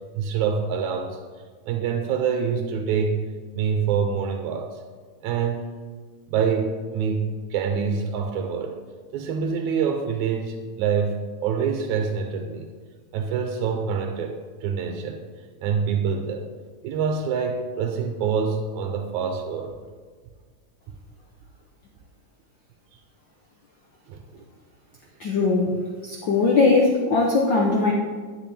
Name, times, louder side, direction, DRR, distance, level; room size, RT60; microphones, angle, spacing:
voice 1, 0.2-1.2 1.7-4.8 5.2-5.7 6.3-8.8 9.1-12.7 13.1-15.2 15.6-16.5 16.8-19.7 24.1-24.4, right 6 dB, 90° right, 4 dB, 2.1 m, -26 dB
voice 2, 25.2-25.7 26.0-27.9, left 3 dB, 80° left, -1 dB, 1.0 m, -20 dB
10.5 x 9.4 x 3.4 m, 1.5 s
omnidirectional pair, 3.3 m